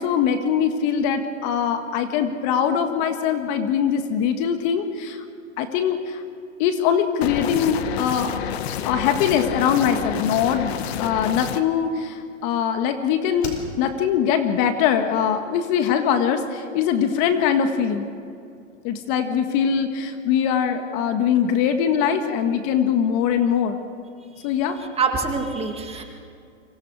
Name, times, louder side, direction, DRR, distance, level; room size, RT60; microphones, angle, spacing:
voice 1, 0.0-5.2 5.6-6.2 6.6-8.3 8.8-10.7 11.0-18.1 18.8-23.8 24.4-24.8, left 8 dB, 35° left, 7 dB, 1.6 m, -22 dB
sound 1, 7.2-11.6, left 9 dB, 55° left, 1.4 m, -29 dB
Slam, 10.2-12.9 13.4-14.2 14.4-14.5, left 3 dB, 80° left, 5.3 m, -40 dB
voice 2, 24.8-26.0, right 5 dB, 15° right, 4 dB, 2.0 m, -26 dB
27.5 x 25.0 x 4.8 m, 2.4 s
hypercardioid pair, 140°, 38 cm